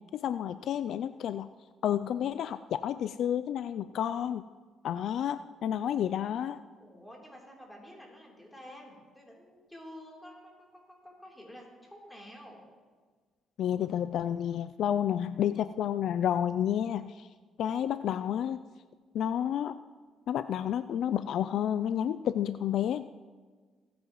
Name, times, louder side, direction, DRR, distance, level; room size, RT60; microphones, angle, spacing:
voice 1, 0.1-1.5 1.8-4.4 4.8-6.6 13.6-17.3 17.6-18.6 19.1-19.8 20.3-23.0, left 10 dB, 65° left, 13 dB, 0.3 m, -30 dB
voice 2, 6.8-12.6, equal, 5° left, -2 dB, 3.4 m, -50 dB
26.0 x 9.4 x 3.1 m, 1.5 s
cardioid pair, 110°, 0 cm